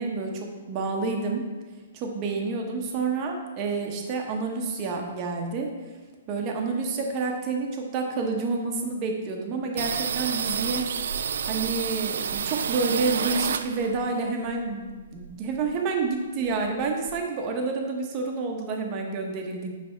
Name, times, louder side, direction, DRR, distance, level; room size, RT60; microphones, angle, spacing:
voice 1, 0.0-1.4 1.9-5.7 6.3-10.8 11.5-19.7, right 4 dB, 30° right, 1 dB, 0.9 m, -29 dB
sound 1, 9.8-14.1 14.4-15.8 16.1-16.2 16.5-17.2, right 7 dB, 75° right, 0.3 m, -30 dB
9.3 x 3.4 x 4.4 m, 1.3 s
hypercardioid pair, 155°, 0 cm